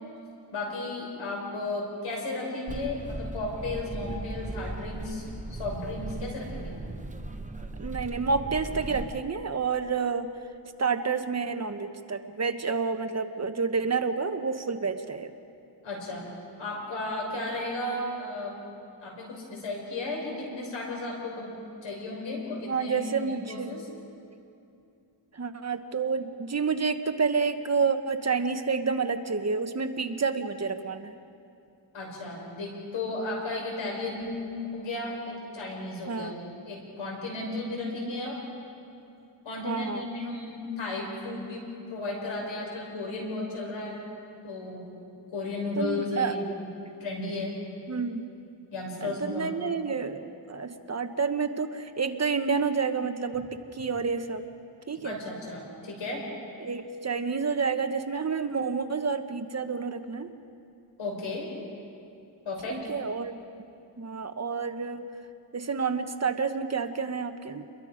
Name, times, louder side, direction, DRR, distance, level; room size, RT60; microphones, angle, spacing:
voice 1, 0.5-6.8 15.8-16.2 16.6-18.6 19.0-21.5 21.8-23.8 31.9-34.5 34.7-36.3 36.6-38.4 39.4-41.6 41.9-44.0 44.4-44.9 45.3-46.7 47.0-47.5 48.7-49.5 55.0-56.2 61.0-61.5 62.4-62.8, left 2 dB, 90° left, -1 dB, 6.3 m, -34 dB
sound 1, 2.7-9.2, right 2 dB, 15° right, 1.1 m, -37 dB
voice 2, 7.8-10.3 10.8-15.3 22.7-23.8 25.3-31.1 36.1-36.3 39.6-40.1 45.8-46.4 47.9-48.3 49.0-54.4 54.9-55.2 56.6-60.3 62.7-63.4 64.0-65.1 65.5-67.6, right 5 dB, 35° right, 8 dB, 1.1 m, -29 dB
29.5 x 22.5 x 5.2 m, 2.6 s
wide cardioid pair, 100°, 44 cm